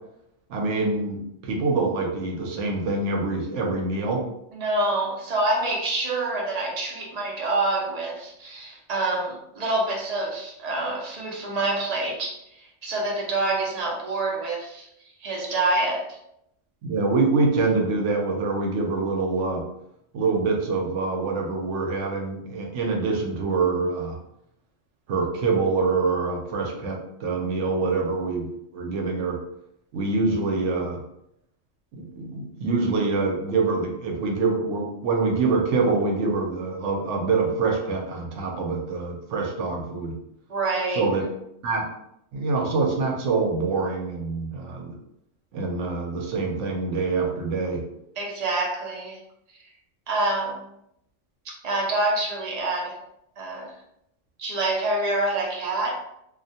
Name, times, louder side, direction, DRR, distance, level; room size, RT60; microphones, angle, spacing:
voice 1, 0.5-4.2 16.8-19.6 20.1-24.2 25.1-28.5 28.7-29.4 29.9-31.0 31.9-40.2 40.9-41.2 41.6-41.9 42.3-44.9 45.5-47.8, right 3 dB, 70° right, 1 dB, 0.9 m, -25 dB
voice 2, 4.5-14.9 15.2-16.1 40.5-41.0 48.2-49.2 50.1-50.6 51.6-53.0 53.4-53.7 54.4-56.0, right 2 dB, 55° right, -2 dB, 0.4 m, -26 dB
2.4 x 2.1 x 2.7 m, 0.78 s
omnidirectional pair, 1.3 m